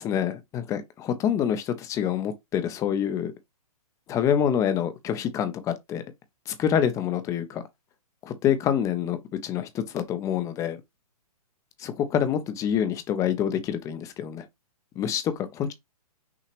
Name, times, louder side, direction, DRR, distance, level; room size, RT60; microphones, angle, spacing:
voice 1, 0.0-3.3 4.1-6.0 6.5-7.6 8.2-10.8 11.8-14.4 15.0-15.7, left 9 dB, 15° left, 0.5 m, -26 dB
5.9 x 2.8 x 3.0 m
hypercardioid pair, 140°, 20 cm